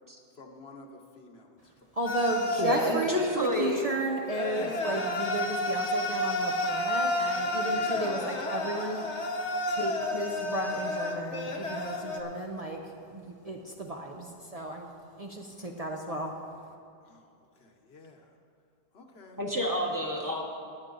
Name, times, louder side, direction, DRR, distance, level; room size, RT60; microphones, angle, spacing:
voice 1, 0.3-1.7 7.7-8.1 17.0-17.3 17.6-18.4 18.9-19.4, left 2 dB, 65° left, 2 dB, 1.2 m, -50 dB
voice 2, 1.9-9.0 9.7-14.9 15.2-16.3, right 1 dB, 40° right, 1 dB, 0.8 m, -34 dB
sound 1, 2.1-3.4 4.3-12.2, left 1 dB, 85° left, 1.3 m, -31 dB
voice 3, 2.6-3.9 4.6-4.7 19.4-20.4, equal, 15° right, -1 dB, 1.2 m, -29 dB
17.5 x 8.9 x 3.9 m, 2.4 s
omnidirectional pair, 1.1 m